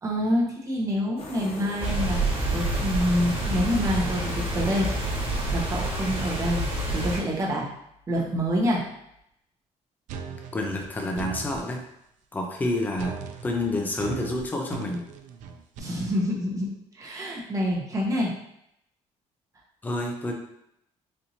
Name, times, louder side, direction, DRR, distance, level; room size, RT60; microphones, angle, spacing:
voice 1, 0.0-2.2 2.5-6.6 6.9-7.7 8.1-8.8 15.8-18.3, equal, 25° right, -3 dB, 0.9 m, -27 dB
sound 1, 1.2-7.2, left 2 dB, 55° left, 0.8 m, -39 dB
sound 2, 1.8-7.2, right 2 dB, 45° right, 1.3 m, -28 dB
sound 3, 10.1-11.7 13.0-15.8, right 7 dB, 85° right, 0.4 m, -38 dB
voice 2, 10.5-11.8 12.3-15.1 19.8-20.3, left 2 dB, 15° left, 1 dB, 0.5 m, -29 dB
4.2 x 2.6 x 2.8 m, 0.78 s
cardioid pair, 145°, 12 cm